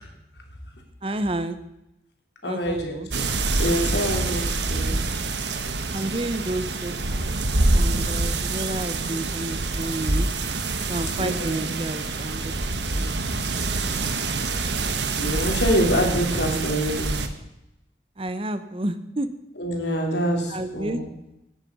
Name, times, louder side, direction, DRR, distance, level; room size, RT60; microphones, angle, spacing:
voice 1, 1.0-1.6 2.4-3.1 5.9-7.4 7.7-10.3 10.9-12.5 13.0-13.2 13.5-13.7 18.2-19.3 20.5-21.0, right 1 dB, 30° right, 11 dB, 0.8 m, -30 dB
voice 2, 2.4-3.2 3.6-5.0 11.2-11.7 15.2-17.2 19.6-21.1, equal, 80° left, 2 dB, 3.3 m, -26 dB
sound 1, 3.1-17.3, right 3 dB, 90° right, 1.3 m, -26 dB
16.5 x 10.5 x 5.4 m, 0.89 s
head